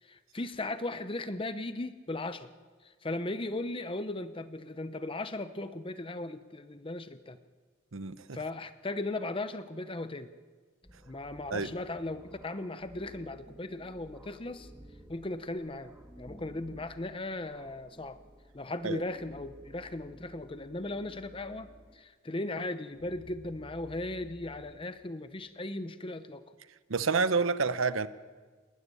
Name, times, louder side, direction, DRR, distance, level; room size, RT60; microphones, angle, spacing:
voice 1, 0.0-2.5 2.8-7.4 8.3-10.3 11.1-14.7 15.1-18.2 18.5-26.5, left 2 dB, 25° left, 0.8 m, -37 dB
voice 2, 7.9-8.4 11.5-11.7 18.8-19.0 26.9-28.1, right 4 dB, 80° right, 1.0 m, -28 dB
sound 1, 10.8-22.0 22.7-24.8, equal, 10° right, 1.7 m, -54 dB
29.0 x 12.5 x 9.7 m
head